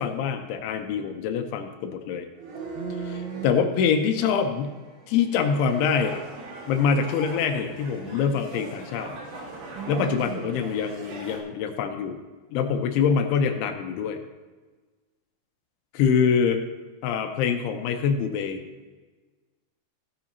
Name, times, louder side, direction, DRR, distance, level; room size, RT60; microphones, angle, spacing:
voice 1, 0.0-2.3 3.4-4.7 5.1-6.2 6.7-9.1 9.9-12.2 12.5-14.2 15.9-16.6 17.0-18.6, left 6 dB, 85° left, 6 dB, 3.1 m, -24 dB
sound 1, 2.3-3.6 4.2-11.4, right 2 dB, 60° right, 3.0 m, -40 dB
voice 2, 2.7-3.5 9.7-10.6, right 7 dB, 80° right, 4 dB, 2.8 m, -35 dB
15.5 x 8.7 x 2.8 m, 1.3 s
omnidirectional pair, 5.6 m